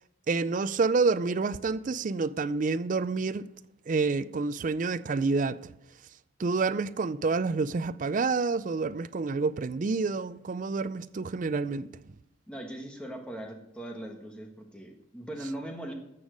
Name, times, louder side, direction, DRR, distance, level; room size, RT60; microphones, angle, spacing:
voice 1, 0.3-3.5 3.9-5.7 6.4-11.9, right 4 dB, 35° right, 0.3 m, -28 dB
voice 2, 12.5-15.9, right 1 dB, 5° left, 1.3 m, -40 dB
13.5 x 7.1 x 5.1 m
head